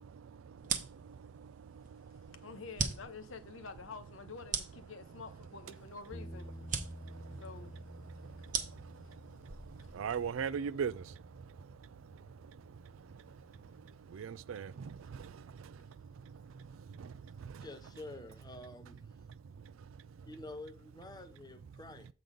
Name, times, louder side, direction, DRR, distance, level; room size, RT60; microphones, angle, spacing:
sound 1, 0.6-10.5, right 6 dB, 40° right, 0.9 m, -41 dB
voice 1, 1.8-7.0 7.3-8.5 9.0-9.2 9.8-9.9, left 4 dB, 80° left, 0.8 m, -50 dB
sound 2, 6.1-15.0, equal, 10° right, 1.4 m, -52 dB
voice 2, 9.9-11.0 14.1-15.3 17.0-17.1 17.4-17.7, right 7 dB, 80° right, 0.4 m, -37 dB
voice 3, 17.6-19.1 20.3-22.1, left 2 dB, 20° left, 0.7 m, -48 dB
7.6 x 3.7 x 5.2 m
head